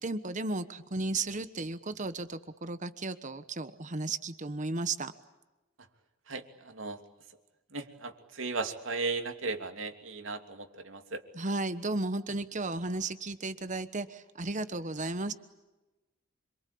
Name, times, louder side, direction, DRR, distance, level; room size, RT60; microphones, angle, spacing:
voice 1, 0.0-5.1 11.3-15.3, right 2 dB, 40° right, 12 dB, 1.2 m, -34 dB
voice 2, 6.3-7.0 7.7-11.2, right 3 dB, 75° right, 5 dB, 2.9 m, -36 dB
27.0 x 24.5 x 8.6 m, 1.0 s
head